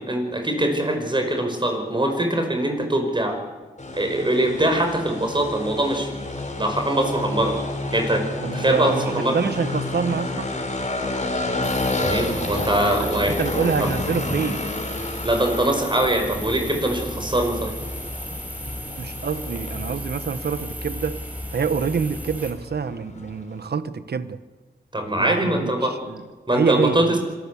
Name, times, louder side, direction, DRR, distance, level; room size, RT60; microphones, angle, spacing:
voice 1, 0.0-3.4 3.9-6.1 6.6-7.6 7.9-8.2 8.5-9.4 12.0-13.4 13.8-13.9 15.2-17.7 24.9-26.0 26.5-27.1, right 1 dB, 30° right, 5.4 m, -22 dB
sound 1, 3.8-23.7, left 2 dB, 45° left, 4.5 m, -31 dB
voice 2, 8.4-10.5 12.2-12.7 13.0-14.6 19.0-21.2 21.5-24.4 25.2-26.2 26.5-27.2, right 6 dB, 70° right, 1.1 m, -26 dB
sound 2, 11.6-22.5, equal, 10° right, 5.1 m, -34 dB
25.5 x 14.0 x 8.4 m
cardioid pair, 55°, 17 cm